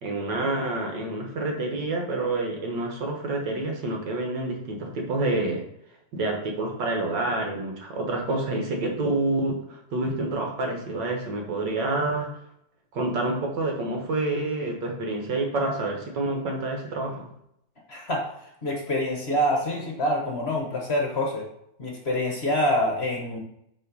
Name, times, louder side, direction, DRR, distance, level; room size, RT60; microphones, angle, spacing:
voice 1, 0.0-5.6 6.1-12.3 12.9-17.3, right 2 dB, 70° right, 1 dB, 2.0 m, -28 dB
voice 2, 17.9-18.3 18.6-21.5 21.8-23.4, left 1 dB, 40° left, 0 dB, 1.3 m, -26 dB
7.4 x 3.8 x 5.3 m, 0.76 s
omnidirectional pair, 2.0 m